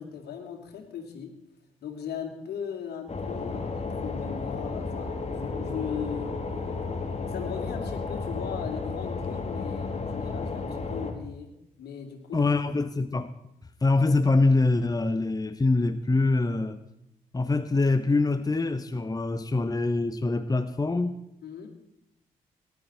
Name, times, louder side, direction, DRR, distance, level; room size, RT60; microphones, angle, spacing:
voice 1, 0.0-1.4 1.8-6.5 7.3-11.5 11.8-12.5 21.4-21.7, left 7 dB, 70° left, 2.8 m, -38 dB
sound 1, 3.1-11.1, left 4 dB, 40° left, 2.9 m, -33 dB
voice 2, 12.3-13.3 13.8-16.8 17.3-21.2, left 3 dB, 20° left, 1.0 m, -24 dB
19.0 x 12.0 x 4.4 m
hypercardioid pair, 40°, 18 cm